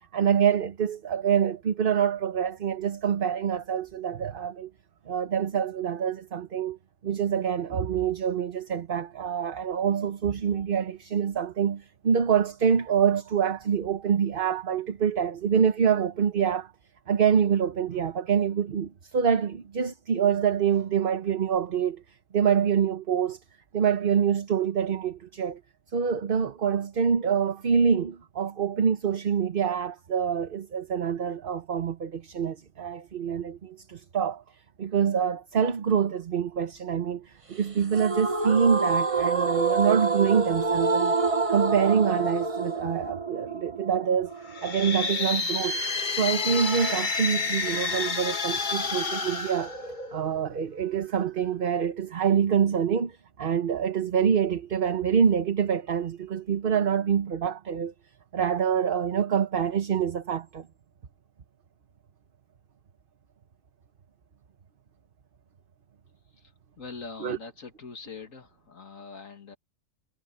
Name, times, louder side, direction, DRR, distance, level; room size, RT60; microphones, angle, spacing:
voice 1, 0.1-4.7 5.1-6.8 7.0-16.7 17.1-22.0 22.3-23.4 23.7-25.6 25.9-34.4 34.8-41.1 41.5-44.3 44.6-45.8 46.2-49.7 50.1-57.9 58.3-60.7 67.2-67.4, right 7 dB, 45° right, 1.1 m, -26 dB
sound 1, 37.9-45.0, right 4 dB, 25° right, 1.1 m, -27 dB
sound 2, 44.4-50.4, left 4 dB, 35° left, 1.4 m, -29 dB
voice 2, 66.8-69.6, left 4 dB, 80° left, 2.4 m, -42 dB
omnidirectional pair, 1.4 m